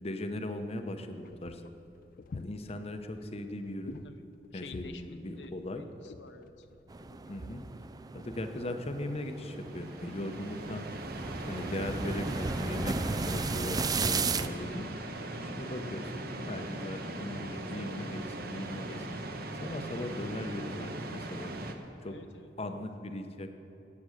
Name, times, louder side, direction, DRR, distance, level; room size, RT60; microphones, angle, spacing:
voice 1, 0.0-1.6 2.3-4.0 4.5-5.8 7.3-7.6 8.1-10.9 11.5-13.0 13.2-14.8 15.1-19.2 19.6-21.5 22.0-22.2 22.6-23.5, left 1 dB, 35° left, 7 dB, 0.9 m, -38 dB
sound 1, 1.1-7.7, left 3 dB, 55° left, 0.4 m, -50 dB
voice 2, 4.5-6.7 22.0-22.8, left 4 dB, 85° left, 8 dB, 0.7 m, -51 dB
sound 2, 6.9-14.5, right 4 dB, 20° right, 0.4 m, -35 dB
sound 3, 9.2-21.7, right 1 dB, 60° right, 1.1 m, -40 dB
15.5 x 8.8 x 6.5 m, 3.0 s
head